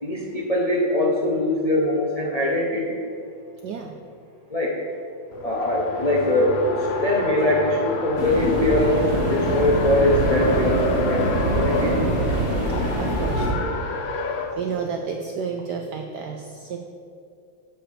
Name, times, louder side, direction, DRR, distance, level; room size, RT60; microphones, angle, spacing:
voice 1, 0.0-3.0 4.5-4.8 5.4-6.7 7.0-12.0, left 1 dB, 50° left, -4 dB, 0.4 m, -22 dB
voice 2, 3.6-4.0 5.3-5.6 13.0-13.9 14.5-16.8, right 6 dB, 80° right, 3 dB, 0.9 m, -31 dB
Race car auto racing, 5.3-14.5, left 3 dB, 85° left, 1.6 m, -29 dB
sound 1, 8.2-13.5, right 1 dB, 30° right, 1.5 m, -24 dB
8.5 x 5.6 x 5.0 m, 2.5 s
omnidirectional pair, 2.3 m